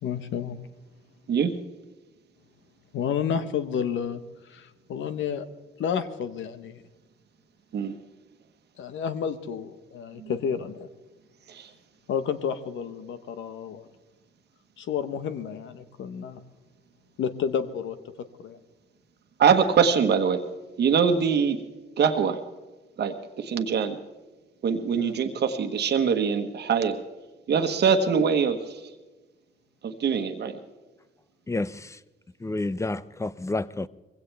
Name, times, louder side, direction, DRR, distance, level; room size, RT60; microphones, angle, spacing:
voice 1, 0.0-0.6 2.9-5.4 5.8-6.8 8.8-10.9 12.1-13.9 14.8-16.4 17.2-18.0 18.4-18.6 25.0-25.1, left 7 dB, 75° left, 1.2 m, -30 dB
voice 2, 19.4-20.4 20.8-21.6 22.0-22.4 23.0-24.0 24.6-27.0 27.5-28.8 29.8-30.6, right 6 dB, 60° right, 1.3 m, -23 dB
voice 3, 31.5-32.0 32.4-33.9, left 2 dB, 15° left, 0.5 m, -30 dB
22.0 x 16.5 x 3.5 m
cardioid pair, 90°, 20 cm